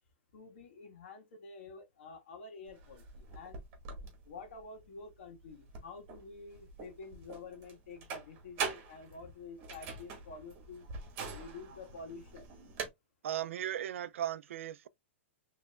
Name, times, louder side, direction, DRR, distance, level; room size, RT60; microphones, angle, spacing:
voice 1, 0.3-3.6 4.2-10.9 11.3-12.5, left 4 dB, 60° left, 1.7 m, -49 dB
sound 1, 2.7-12.9, right 5 dB, 30° right, 1.9 m, -44 dB
voice 2, 13.2-14.9, right 11 dB, 75° right, 0.4 m, -37 dB
5.0 x 3.3 x 2.4 m
supercardioid pair, 165°, 7 cm